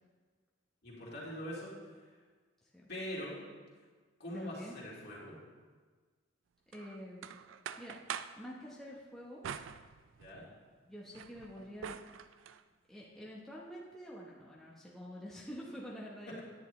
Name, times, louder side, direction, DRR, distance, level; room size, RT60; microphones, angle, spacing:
voice 1, 0.8-1.7 2.9-3.4 4.2-5.3 10.2-10.5 16.3-16.4, left 1 dB, 55° left, -5 dB, 2.3 m, -42 dB
voice 2, 4.3-4.7 6.7-7.2 7.8-8.0 8.4-9.4 10.8-12.0 12.9-16.4, equal, ahead, -6 dB, 0.9 m, -47 dB
sound 1, 6.7-8.4 9.4-10.5 10.9-12.6, right 8 dB, 80° right, 0.3 m, -45 dB
10.0 x 9.1 x 3.2 m, 1.4 s
head